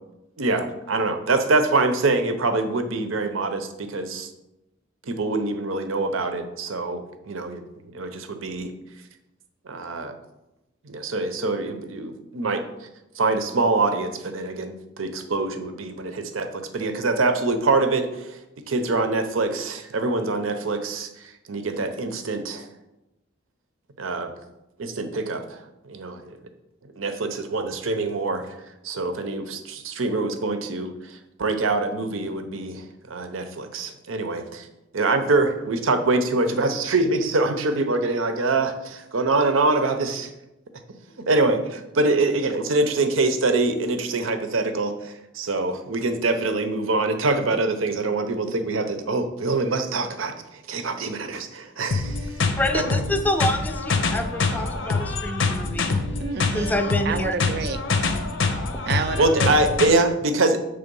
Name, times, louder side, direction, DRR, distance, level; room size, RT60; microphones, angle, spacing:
voice 1, 0.4-4.3 5.1-8.7 9.7-10.1 10.8-12.9 13.2-18.4 18.7-22.7 24.0-24.3 24.8-26.4 27.0-28.5 28.8-34.7 34.9-40.3 41.2-52.4 52.7-53.0 59.2-60.6, right 3 dB, 90° right, 0.7 m, -24 dB
sound 1, 51.9-59.9, left 3 dB, 70° left, 0.7 m, -25 dB
voice 2, 52.6-56.0 56.5-57.4, left 1 dB, 10° left, 0.4 m, -27 dB
voice 3, 56.2-56.8 57.1-57.8 58.9-59.6, right 5 dB, 55° right, 0.4 m, -28 dB
6.9 x 3.4 x 5.3 m
head